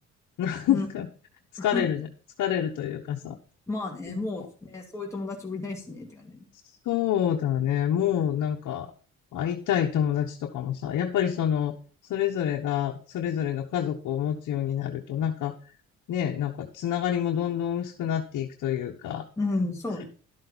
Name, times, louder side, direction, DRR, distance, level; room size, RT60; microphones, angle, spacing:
voice 1, 0.4-1.1 1.6-2.1 2.4-3.4 4.1-4.2 6.8-8.9 9.3-11.7 12.1-15.5 16.1-19.2, left 10 dB, 80° left, 1 dB, 1.2 m, -27 dB
voice 2, 3.7-6.4 19.4-20.1, left 2 dB, 10° left, -2 dB, 2.6 m, -32 dB
12.0 x 7.7 x 4.1 m, 0.38 s
cardioid pair, 90°, 30 cm